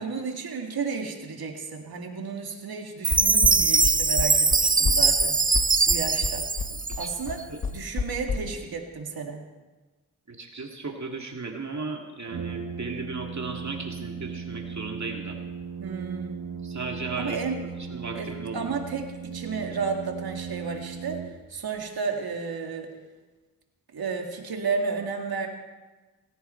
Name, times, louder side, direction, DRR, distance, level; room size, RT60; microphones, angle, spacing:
voice 1, 0.0-5.4 5.8-6.5 7.0-7.4 7.7-9.4 15.8-16.6 17.2-17.6 18.1-22.9 23.9-25.5, right 5 dB, 85° right, 2 dB, 2.3 m, -32 dB
Chime, 3.0-7.4, right 4 dB, 25° right, 0.7 m, -22 dB
sound 1, 3.1-8.4, left 5 dB, 70° left, 1.6 m, -29 dB
voice 2, 10.3-15.4 16.6-17.4 17.9-18.7, right 4 dB, 50° right, 2 dB, 2.3 m, -35 dB
Brass instrument, 12.3-21.8, right 6 dB, 70° right, 1.2 m, -37 dB
18.5 x 17.0 x 4.5 m, 1.2 s
cardioid pair, 50°, 36 cm